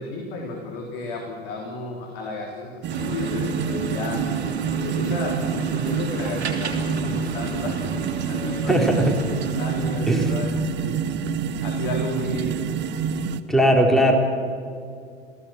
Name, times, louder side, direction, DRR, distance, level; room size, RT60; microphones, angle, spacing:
voice 1, 0.0-4.4 4.8-9.1 9.6-11.1 11.6-12.7, left 2 dB, 55° left, 1 dB, 3.6 m, -32 dB
sound 1, 2.8-13.4, right 7 dB, 35° right, 1.2 m, -28 dB
sound 2, 2.9-10.0, right 4 dB, 75° right, 3.0 m, -32 dB
voice 2, 8.7-9.1 10.1-10.3 13.5-14.1, right 1 dB, ahead, 2 dB, 3.8 m, -18 dB
28.5 x 17.0 x 7.5 m, 2.3 s
figure-of-eight pair, 85°, 33 cm